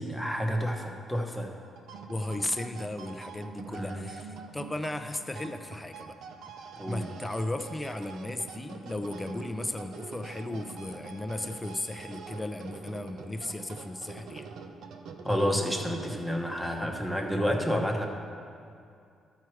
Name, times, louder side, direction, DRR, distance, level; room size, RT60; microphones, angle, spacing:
voice 1, 0.0-1.5 3.7-4.1 6.8-7.1 15.2-18.1, equal, ahead, 2 dB, 1.0 m, -30 dB
sound 1, 1.6-16.6, right 5 dB, 75° right, 0.7 m, -45 dB
voice 2, 2.1-6.2 6.9-14.5 17.6-17.8, left 1 dB, 15° left, 7 dB, 0.6 m, -35 dB
13.0 x 4.6 x 4.7 m, 2.4 s
cardioid pair, 90°, 0 cm